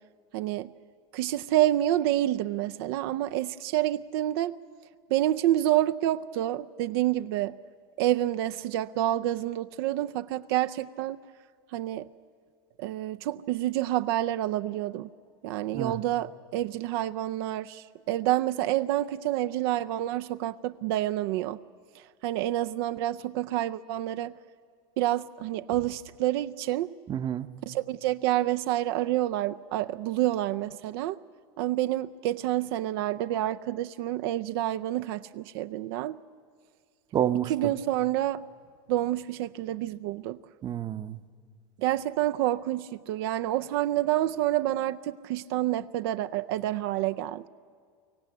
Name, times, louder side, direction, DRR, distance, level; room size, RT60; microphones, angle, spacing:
voice 1, 0.3-0.7 1.1-4.5 5.1-7.5 8.0-11.2 11.7-12.1 12.8-15.1 15.4-21.6 22.2-24.3 25.0-26.9 27.7-31.2 31.6-36.2 37.5-38.4 38.9-40.4 41.8-47.4, right 14 dB, 75° right, 9 dB, 0.5 m, -28 dB
voice 2, 27.1-27.5 37.1-37.7 40.6-41.2, right 10 dB, 30° right, 12 dB, 0.8 m, -29 dB
23.5 x 16.0 x 9.5 m, 2.1 s
supercardioid pair, 115°, 13 cm